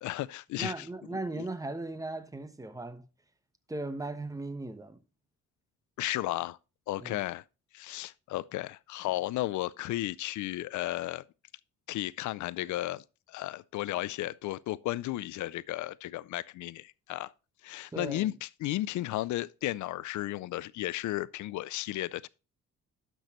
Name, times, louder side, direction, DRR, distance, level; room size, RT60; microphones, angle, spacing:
voice 1, 0.0-0.7 1.1-1.5 6.0-6.6 6.9-7.4 7.7-11.2 11.9-17.3 17.6-22.3, left 16 dB, 75° left, 0.5 m, -34 dB
voice 2, 0.6-3.0 3.7-5.0 7.0-7.3 17.9-18.3, right 2 dB, 10° right, 1.1 m, -37 dB
11.5 x 6.2 x 3.0 m
cardioid pair, 90°, 30 cm